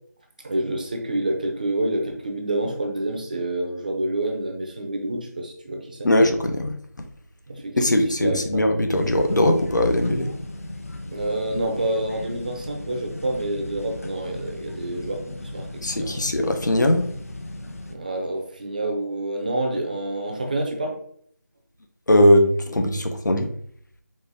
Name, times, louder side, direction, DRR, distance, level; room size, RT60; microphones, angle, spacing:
voice 1, 0.4-6.1 7.5-8.4 11.1-15.7 15.9-16.3 17.9-21.0, right 1 dB, 25° right, 3 dB, 0.6 m, -28 dB
voice 2, 6.0-7.1 7.8-10.3 15.8-17.1 22.1-23.5, left 1 dB, 85° left, 5 dB, 0.9 m, -20 dB
sound 1, 8.9-17.9, left 1 dB, 50° left, 0.6 m, -37 dB
4.2 x 2.6 x 3.6 m, 0.62 s
figure-of-eight pair, 170°, 10 cm